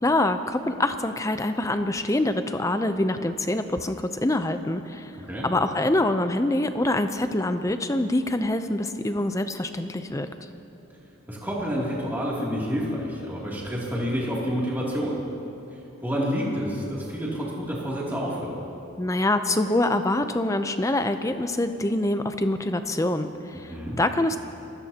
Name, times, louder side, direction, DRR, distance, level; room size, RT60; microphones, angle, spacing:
voice 1, 0.0-5.1 5.4-10.3 19.0-24.4, left 1 dB, 15° left, 9 dB, 0.5 m, -25 dB
voice 2, 11.3-15.1 16.0-18.5 23.7-24.0, equal, 10° right, -6 dB, 2.7 m, -28 dB
26.0 x 16.0 x 2.9 m, 2.9 s
head